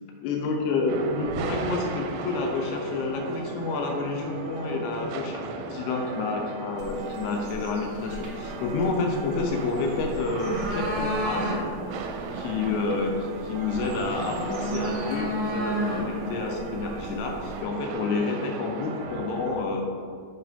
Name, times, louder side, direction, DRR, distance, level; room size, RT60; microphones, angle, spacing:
voice 1, 0.2-11.5 12.3-19.9, left 3 dB, 90° left, 1 dB, 2.3 m, -29 dB
sound 1, 0.9-19.6, right 4 dB, 80° right, 2.7 m, -37 dB
sound 2, 6.8-17.6, equal, 60° right, 1.7 m, -33 dB
8.2 x 5.7 x 3.5 m, 2.2 s
omnidirectional pair, 5.6 m